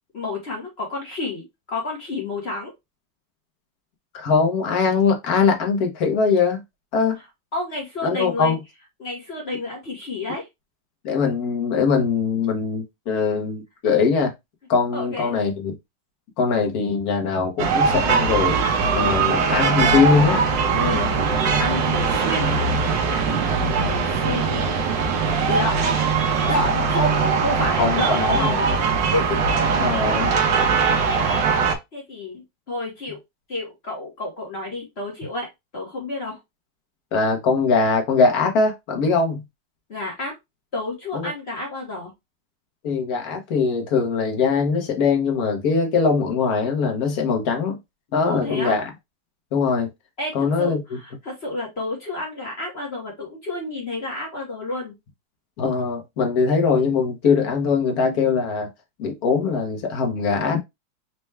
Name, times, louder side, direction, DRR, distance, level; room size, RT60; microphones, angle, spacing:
voice 1, 0.1-2.7 7.5-8.6 9.0-10.5 14.9-15.3 19.0-19.3 20.7-21.1 21.6-22.6 23.5-24.6 25.5-25.8 26.5-28.7 29.1-30.8 31.9-33.2 33.5-36.4 39.9-40.3 40.7-42.1 48.2-48.8 50.2-54.9, left 2 dB, 40° left, 1.1 m, -30 dB
voice 2, 4.1-6.6 6.9-7.2 8.0-8.6 11.0-14.3 14.7-15.7 16.4-18.6 18.9-20.4 23.3-23.4 27.8-28.5 29.8-30.3 37.1-39.4 41.1-41.3 42.8-47.8 48.1-48.9 49.5-49.9 50.3-50.8 55.6-58.7 59.0-60.6, left 5 dB, 60° left, 1.3 m, -21 dB
sound 1, 17.6-31.7, right 5 dB, 75° right, 1.5 m, -21 dB
4.4 x 2.3 x 3.2 m
omnidirectional pair, 2.0 m